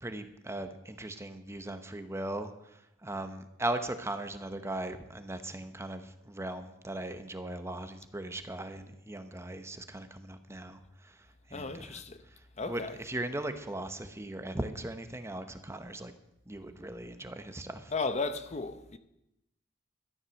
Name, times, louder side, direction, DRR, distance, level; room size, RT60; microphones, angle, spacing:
voice 1, 0.0-2.5 3.0-11.2 11.5-12.0 12.7-16.1 16.5-17.9, right 1 dB, 15° right, 0.9 m, -38 dB
voice 2, 11.5-12.2 12.6-12.9 17.9-19.0, left 3 dB, 35° left, 0.8 m, -34 dB
12.5 x 10.5 x 6.3 m
head